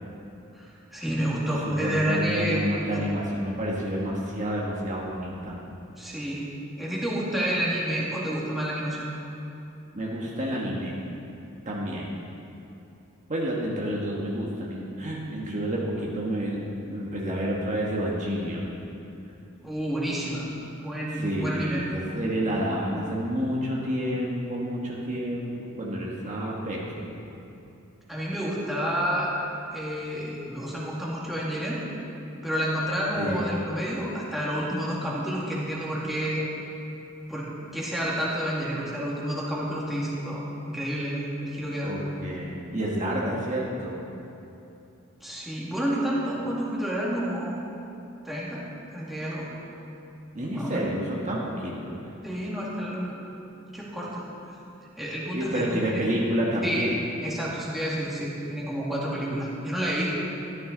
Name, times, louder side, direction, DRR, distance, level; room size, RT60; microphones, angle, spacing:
voice 1, 0.5-2.6 2.9-3.0 6.0-6.5 6.8-9.0 19.6-20.5 20.8-21.8 28.1-29.3 29.7-31.8 32.4-36.4 37.3-41.9 45.2-47.6 48.2-48.6 48.9-49.5 50.5-50.8 52.2-53.1 53.7-54.2 55.0-56.0 56.6-56.8 57.2-60.1, equal, ahead, -7 dB, 2.2 m, -29 dB
voice 2, 1.6-5.6 9.9-11.0 11.6-12.1 13.3-18.7 21.2-27.1 33.2-33.5 41.8-44.0 50.3-52.0 55.3-57.0, equal, 35° right, -4 dB, 1.5 m, -29 dB
13.5 x 12.5 x 3.9 m, 2.8 s
head